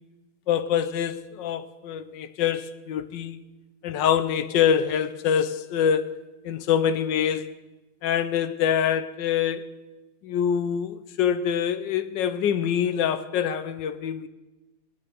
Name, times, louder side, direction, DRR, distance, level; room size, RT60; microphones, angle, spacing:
voice 1, 0.5-3.4 3.8-7.5 8.0-9.7 10.2-14.3, left 8 dB, 70° left, 1.2 m, -25 dB
21.0 x 9.9 x 5.0 m
omnidirectional pair, 2.4 m